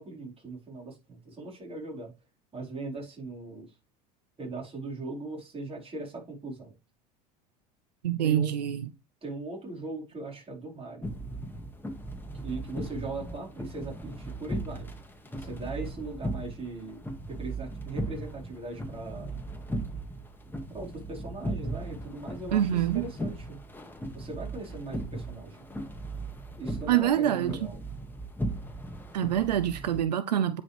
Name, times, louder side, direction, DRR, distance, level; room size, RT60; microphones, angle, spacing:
voice 1, 0.0-2.1 2.5-3.7 4.4-6.7 8.2-8.6 9.2-11.1 12.3-14.9 15.4-17.0 17.3-19.3 20.7-23.6 24.1-25.7 26.6-27.8, right 2 dB, 30° right, 4.6 m, -39 dB
voice 2, 8.0-8.8 22.5-23.0 26.9-27.6 29.1-30.6, right 11 dB, 90° right, 0.6 m, -25 dB
sound 1, 11.0-30.0, right 1 dB, 10° left, 2.0 m, -37 dB
9.6 x 5.3 x 3.4 m
hypercardioid pair, 75°, 20 cm